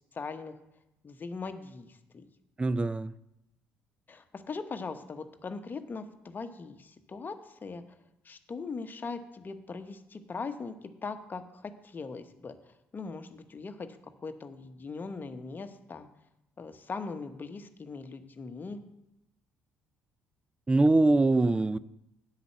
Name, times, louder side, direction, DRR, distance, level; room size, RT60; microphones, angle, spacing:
voice 1, 0.1-0.5 1.0-2.3 4.1-7.8 8.2-10.7 11.0-12.5 12.9-13.9 14.2-16.1 16.6-18.8, left 4 dB, 30° left, 8 dB, 1.0 m, -40 dB
voice 2, 2.6-3.1 20.7-21.8, right 2 dB, 15° right, 18 dB, 0.4 m, -23 dB
8.0 x 5.8 x 7.7 m, 0.87 s
figure-of-eight pair, 50°, 6 cm